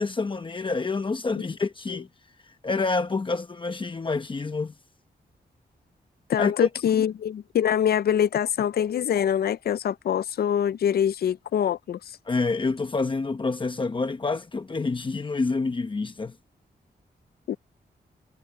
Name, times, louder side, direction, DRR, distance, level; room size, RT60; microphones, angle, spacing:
voice 1, 0.0-2.1 2.6-4.7 6.4-6.5 6.9-7.0 12.3-16.3, left 3 dB, 30° left, 1.0 m, -27 dB
voice 2, 6.3-12.0 17.5-17.6, left 9 dB, 65° left, 0.4 m, -24 dB
wide cardioid pair, 145°, 17 cm